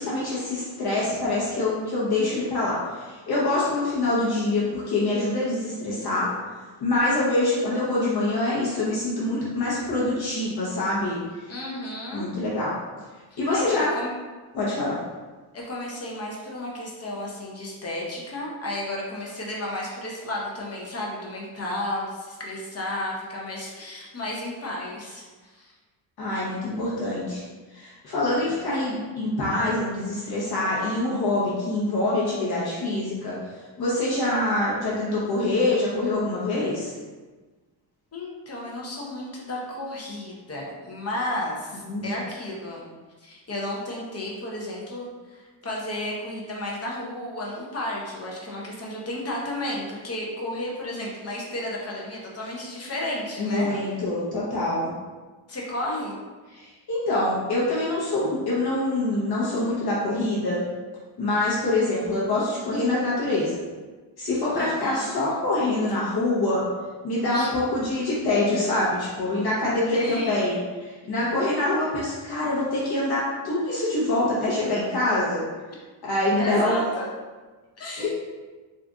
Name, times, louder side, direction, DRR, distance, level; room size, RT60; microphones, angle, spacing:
voice 1, 0.0-6.3 6.8-11.2 12.1-12.8 13.4-13.9 14.5-15.0 26.2-27.4 27.7-33.3 33.8-36.9 41.9-42.1 53.4-54.9 56.5-60.6 61.2-63.6 64.2-66.6 67.0-75.4 76.0-76.8 78.0-78.1, left 2 dB, 55° left, -7 dB, 0.9 m, -25 dB
voice 2, 11.5-12.3 13.3-14.1 15.5-25.7 38.1-42.9 43.2-53.9 55.5-56.2 64.5-65.3 67.3-67.5 69.9-70.5 76.4-77.1 77.8-78.1, left 1 dB, 35° left, -3 dB, 0.6 m, -33 dB
3.8 x 2.5 x 3.4 m, 1.3 s
wide cardioid pair, 170°, 46 cm